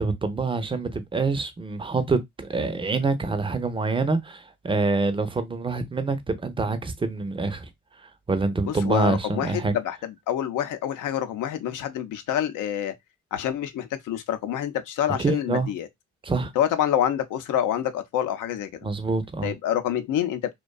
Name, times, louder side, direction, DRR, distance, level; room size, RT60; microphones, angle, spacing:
voice 1, 0.0-7.7 8.3-9.7 15.2-15.7 16.2-16.5 18.8-19.5, right 3 dB, 15° right, 0.5 m, -26 dB
voice 2, 8.7-12.9 13.3-15.9 16.6-18.9 19.4-20.4, left 10 dB, 65° left, 0.6 m, -27 dB
2.5 x 2.2 x 2.2 m
supercardioid pair, 65°, 33 cm